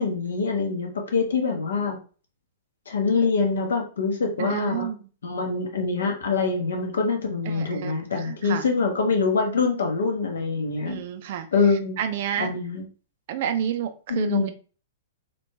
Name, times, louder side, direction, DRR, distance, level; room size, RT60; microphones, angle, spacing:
voice 1, 0.0-2.0 2.9-4.9 5.2-11.0 11.5-12.0 12.4-12.8 14.1-14.5, left 4 dB, 65° left, 3 dB, 0.8 m, -24 dB
voice 2, 4.4-5.0 7.5-8.7 10.8-11.5 12.0-12.6 13.3-14.5, right 9 dB, 50° right, 9 dB, 0.4 m, -30 dB
3.3 x 3.1 x 2.7 m, 0.37 s
figure-of-eight pair, 105°, 0 cm